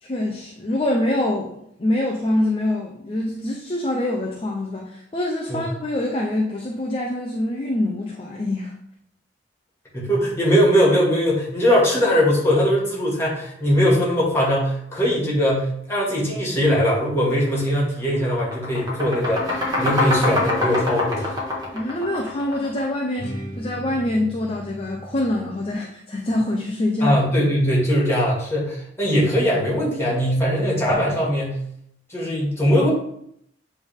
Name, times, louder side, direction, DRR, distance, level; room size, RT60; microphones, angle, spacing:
voice 1, 0.0-8.7 21.7-27.2, left 1 dB, 30° left, 0 dB, 0.7 m, -25 dB
voice 2, 9.9-21.4 27.0-31.6 32.1-32.9, equal, 15° left, -5 dB, 2.1 m, -20 dB
sound 1, 17.4-17.6 17.9-22.9, left 2 dB, 20° right, 1.7 m, -24 dB
sound 2, 20.7-21.8 22.2-22.3 23.2-25.7, equal, 55° left, 1.3 m, -38 dB
8.5 x 3.5 x 3.6 m, 0.72 s
head